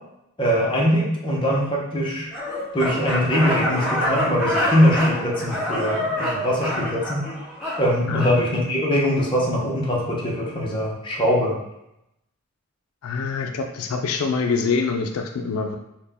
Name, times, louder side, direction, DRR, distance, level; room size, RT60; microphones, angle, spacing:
voice 1, 0.4-2.3 2.7-7.2 7.8-11.6, equal, 20° left, -4 dB, 0.7 m, -22 dB
sound 1, 2.3-8.4, left 1 dB, ahead, 1.1 m, -26 dB
voice 2, 8.1-8.4 13.0-15.8, left 4 dB, 80° left, 4 dB, 0.4 m, -25 dB
4.2 x 2.1 x 3.4 m, 0.85 s
head